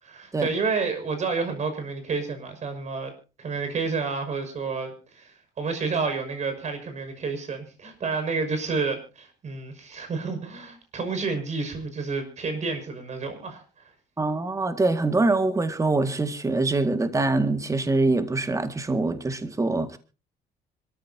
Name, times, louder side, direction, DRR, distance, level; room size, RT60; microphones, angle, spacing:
voice 1, 0.0-3.1 3.4-13.9, right 4 dB, 45° right, 7 dB, 6.0 m, -30 dB
voice 2, 14.2-20.0, right 2 dB, 20° right, 9 dB, 2.0 m, -24 dB
26.0 x 14.0 x 2.8 m, 0.33 s
cardioid pair, 110°, 17 cm